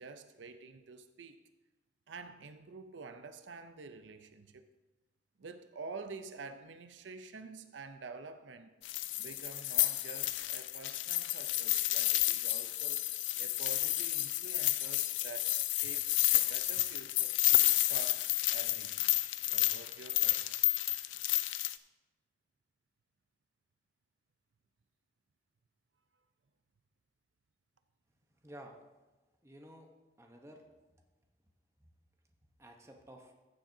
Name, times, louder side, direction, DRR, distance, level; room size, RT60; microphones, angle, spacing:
voice 1, 0.0-1.4 2.1-4.7 5.4-8.7 9.2-13.1 13.4-17.4 17.9-19.1 19.5-20.6, right 4 dB, 85° right, 9 dB, 0.5 m, -48 dB
sound 1, 8.8-21.8, left 16 dB, 85° left, 0.4 m, -31 dB
voice 2, 28.4-28.7 29.4-29.9 30.2-30.6 31.8-31.9 32.6-33.3, right 1 dB, 15° right, 2 dB, 0.9 m, -52 dB
14.5 x 7.4 x 2.7 m, 1.1 s
head